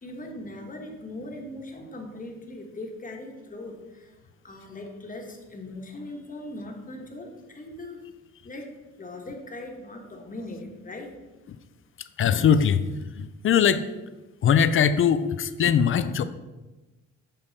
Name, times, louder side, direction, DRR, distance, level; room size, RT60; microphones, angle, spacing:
voice 1, 0.0-4.2 4.4-8.0 8.4-8.7 9.0-11.1, left 1 dB, 25° left, 2 dB, 1.4 m, -39 dB
voice 2, 12.2-12.9 13.2-13.8 14.4-16.2, left 8 dB, 45° left, 13 dB, 0.5 m, -21 dB
7.1 x 5.2 x 4.1 m, 1.1 s
cardioid pair, 90°, 30 cm